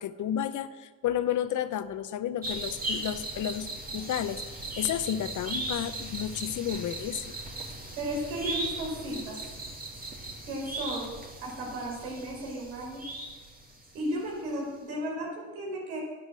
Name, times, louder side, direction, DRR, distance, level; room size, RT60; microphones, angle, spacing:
voice 1, 0.0-7.3, left 10 dB, 55° left, 12 dB, 0.9 m, -32 dB
sound 1, 2.4-14.1 14.4-14.5, right 2 dB, 25° right, 2.8 m, -38 dB
voice 2, 8.0-9.4 10.5-11.1 11.4-13.0 13.9-16.0, right 1 dB, 80° right, -2 dB, 5.2 m, -34 dB
11.0 x 9.6 x 7.6 m, 1.3 s
hypercardioid pair, 65°, 37 cm